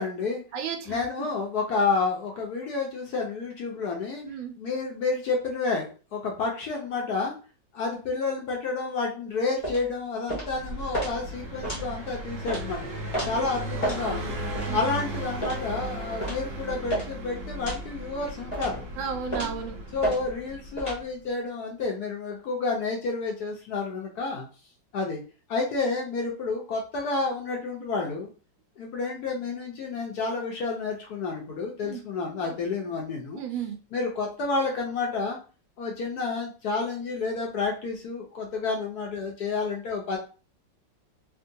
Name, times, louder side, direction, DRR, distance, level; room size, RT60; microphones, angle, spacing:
voice 1, 0.0-0.4 0.8-4.2 4.6-7.3 7.7-12.8 13.2-14.4 14.7-18.9 19.3-19.5 19.9-24.5 24.9-25.2 25.5-28.3 28.8-33.4 33.9-35.4 35.8-40.2, left 4 dB, 65° left, 0 dB, 1.0 m, -30 dB
voice 2, 0.5-1.0 4.2-4.5 13.2-13.4 14.6-14.9 19.0-19.8 31.8-32.0 32.4-32.5 33.3-33.8, right 7 dB, 80° right, 5 dB, 1.3 m, -34 dB
sound 1, 9.6-9.8 10.3-10.5 10.9-11.1 11.6-11.8 12.5-12.6 13.1-13.3 13.8-14.0 14.5-14.7 15.4-15.6 16.2-16.4 16.9-17.1 17.6-17.8 18.5-18.8 19.3-19.6 20.0-20.2 20.8-21.0, right 1 dB, 30° left, 0.6 m, -30 dB
Car passing by, 10.5-21.0, right 1 dB, 55° right, 0.9 m, -36 dB
3.6 x 2.2 x 2.6 m, 0.36 s
omnidirectional pair, 2.1 m